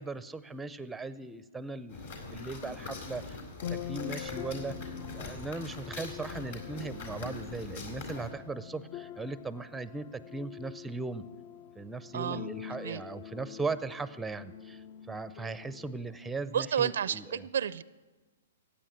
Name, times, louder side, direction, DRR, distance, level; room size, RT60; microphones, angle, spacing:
voice 1, 0.0-3.4 3.7-11.2 11.8-17.4, right 3 dB, 5° right, 14 dB, 0.6 m, -38 dB
sound 1, 1.9-8.3, left 3 dB, 65° left, 3.9 m, -42 dB
sound 2, 3.5-16.1, left 9 dB, 45° left, 0.6 m, -45 dB
voice 2, 12.1-12.5 12.8-13.0 16.5-17.8, right 8 dB, 75° right, 19 dB, 0.5 m, -31 dB
15.0 x 8.7 x 8.8 m, 1.2 s
hypercardioid pair, 135°, 0 cm